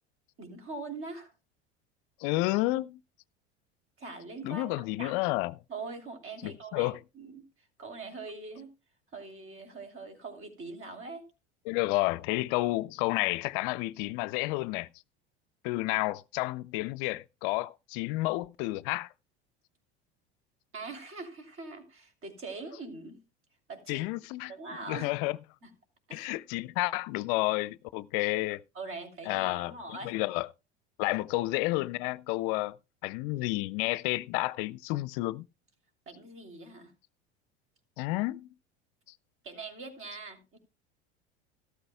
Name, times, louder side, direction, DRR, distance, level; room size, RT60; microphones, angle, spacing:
voice 1, 0.4-1.3 4.0-5.2 5.7-7.4 7.8-8.7 9.1-11.3 20.7-23.2 23.7-24.1 24.5-25.1 25.6-25.7 26.1-26.3 28.7-30.2 36.1-36.9 39.4-40.6, right 3 dB, 40° right, 3.1 m, -42 dB
voice 2, 2.2-3.0 4.4-5.6 6.4-7.0 11.7-14.9 15.6-19.1 23.9-24.5 24.9-25.4 26.1-28.6 29.3-30.5 31.0-32.8 33.0-35.4 38.0-38.5, left 20 dB, 60° left, 0.5 m, -30 dB
14.0 x 13.0 x 2.3 m
hypercardioid pair, 80°, 33 cm